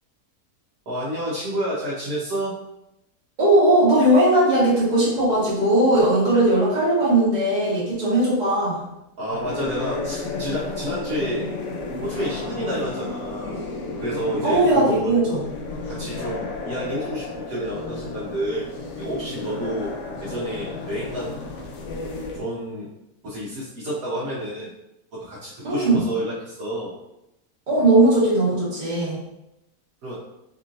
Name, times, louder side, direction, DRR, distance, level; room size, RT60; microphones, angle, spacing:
voice 1, 0.9-2.6 9.2-11.5 12.0-13.6 14.0-15.2 15.9-18.7 19.0-19.9 20.2-21.4 22.3-22.9 23.2-24.7 25.2-27.0 27.8-27.9 30.0-30.2, right 1 dB, 60° right, -8 dB, 1.3 m, -29 dB
voice 2, 3.4-8.8 14.4-15.4 25.6-26.0 27.7-29.2, right 1 dB, 30° right, -7 dB, 1.4 m, -18 dB
sound 1, 9.3-22.4, left 3 dB, 65° left, 0.7 m, -32 dB
4.7 x 2.8 x 2.5 m, 0.87 s
omnidirectional pair, 1.8 m